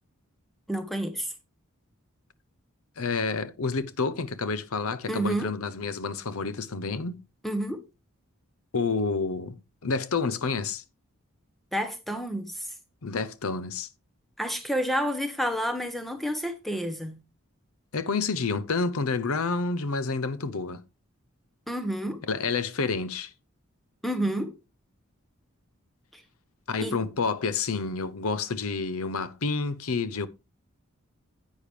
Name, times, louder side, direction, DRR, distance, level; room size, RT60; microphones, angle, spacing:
voice 1, 0.7-1.3 5.1-5.5 7.4-7.8 11.7-12.7 14.4-17.2 21.7-22.2 24.0-24.5 26.1-26.2 26.8-27.0, equal, ahead, 1.0 m, -29 dB
voice 2, 3.0-7.2 8.7-9.6 9.8-10.8 13.0-13.9 17.9-20.8 22.3-23.3 26.7-30.3, left 4 dB, 75° left, 0.7 m, -29 dB
9.9 x 8.4 x 3.2 m
head